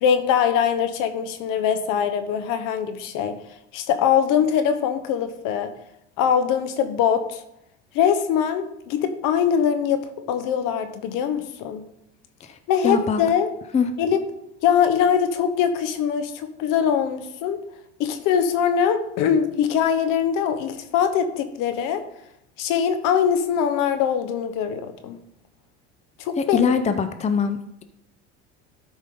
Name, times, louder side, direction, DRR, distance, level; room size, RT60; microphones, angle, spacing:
voice 1, 0.0-3.4 3.7-5.7 6.2-7.4 7.9-11.8 12.7-13.5 14.0-14.2 14.6-17.6 18.0-22.0 22.6-25.2 26.2-26.6, left 8 dB, 65° left, 9 dB, 1.1 m, -22 dB
voice 2, 12.8-13.2 13.7-13.9 26.4-27.8, left 5 dB, 20° left, 9 dB, 0.6 m, -23 dB
12.5 x 5.1 x 3.8 m, 0.79 s
supercardioid pair, 100°, 35 cm